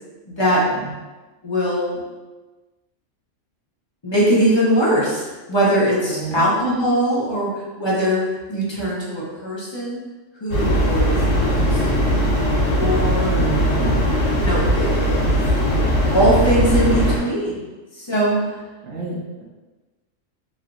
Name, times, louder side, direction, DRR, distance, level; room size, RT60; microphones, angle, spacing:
voice 1, 0.3-0.7 1.4-2.0 4.0-10.0 10.3-12.0 12.8-13.4 14.3-15.2 16.1-17.7 17.9-18.6, equal, 30° left, -6 dB, 0.6 m, -21 dB
voice 2, 6.1-6.4 13.2-14.0 18.8-19.2, right 4 dB, 70° right, -2 dB, 0.9 m, -28 dB
sound 1, 10.5-17.2, equal, 85° left, 1.2 m, -19 dB
3.1 x 2.8 x 2.5 m, 1.2 s
omnidirectional pair, 1.3 m